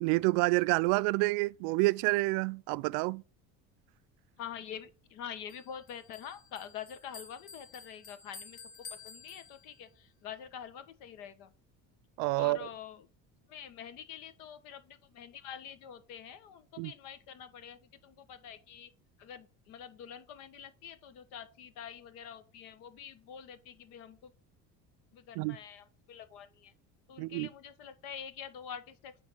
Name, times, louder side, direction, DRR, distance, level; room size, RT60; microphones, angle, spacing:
voice 1, 0.0-3.2 12.2-12.7 16.8-16.9 25.4-25.6 27.2-27.5, right 23 dB, 75° right, 0.5 m, -28 dB
voice 2, 4.4-8.6 9.0-11.5 12.4-13.0 13.5-18.9 19.2-24.3 25.1-26.7 27.1-29.3, left 8 dB, 75° left, 1.3 m, -46 dB
Bell, 5.5-10.0, left 5 dB, 25° left, 2.0 m, -51 dB
9.8 x 3.7 x 5.5 m
cardioid pair, 135°, 34 cm